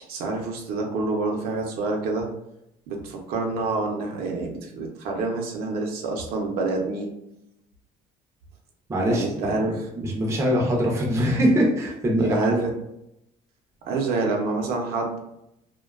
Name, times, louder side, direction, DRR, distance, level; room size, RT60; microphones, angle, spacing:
voice 1, 0.1-2.3 2.9-7.1 9.1-9.9 12.1-12.7 13.8-15.2, right 3 dB, 70° right, 1 dB, 0.5 m, -27 dB
voice 2, 8.9-12.6, equal, 15° right, -1 dB, 0.4 m, -23 dB
2.5 x 2.2 x 2.3 m, 0.83 s
cardioid pair, 150°, 17 cm